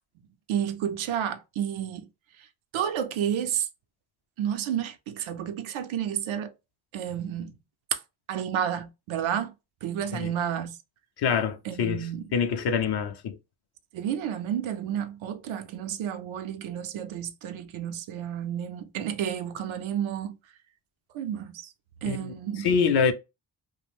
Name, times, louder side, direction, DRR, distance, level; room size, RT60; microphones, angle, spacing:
voice 1, 0.5-2.1 2.7-3.7 4.4-6.5 6.9-7.6 7.9-8.0 8.3-9.5 9.8-10.8 11.7-12.2 13.9-20.4 21.1-21.7 22.0-22.7, right 9 dB, 70° right, 0.5 m, -31 dB
voice 2, 11.2-13.4 22.0-23.1, left 6 dB, 55° left, 0.5 m, -26 dB
2.4 x 2.1 x 3.3 m
cardioid pair, 60°, 50 cm